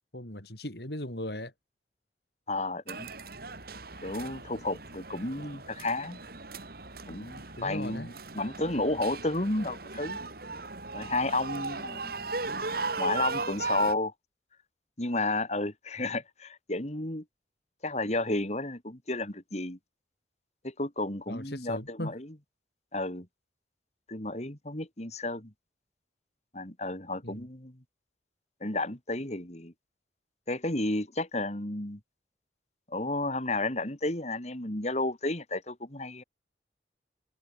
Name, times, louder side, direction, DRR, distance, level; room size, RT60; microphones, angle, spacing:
voice 1, 0.1-1.5 7.6-8.1 21.3-22.1 27.2-27.5, left 1 dB, 60° left, 5.3 m, -38 dB
voice 2, 2.5-3.1 4.0-6.2 7.1-10.2 10.9-12.2 13.0-14.1 15.0-17.2 17.8-19.8 20.6-22.3 22.9-23.3 24.1-25.5 26.5-27.8 28.6-29.7 30.5-32.0 32.9-36.2, left 2 dB, 35° left, 2.9 m, -32 dB
sound 1, 2.9-13.9, right 3 dB, 55° right, 3.2 m, -37 dB
head